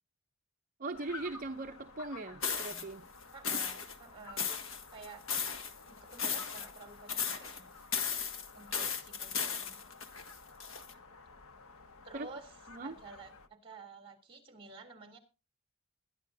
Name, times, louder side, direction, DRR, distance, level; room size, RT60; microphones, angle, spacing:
voice 1, 0.8-3.0 12.1-12.3 12.7-12.9, right 2 dB, 40° right, 0.7 m, -40 dB
sound 1, 0.9-13.5, left 4 dB, 80° left, 1.4 m, -53 dB
sound 2, 2.4-2.8 3.4-3.9 4.4-5.7 6.1-6.8 7.1-7.6 7.9-10.9, left 6 dB, 65° left, 1.8 m, -35 dB
voice 2, 3.3-5.2 6.1-7.7 8.5-9.8 12.0-12.6 12.8-15.2, right 4 dB, 25° right, 3.1 m, -51 dB
21.5 x 11.5 x 2.7 m
head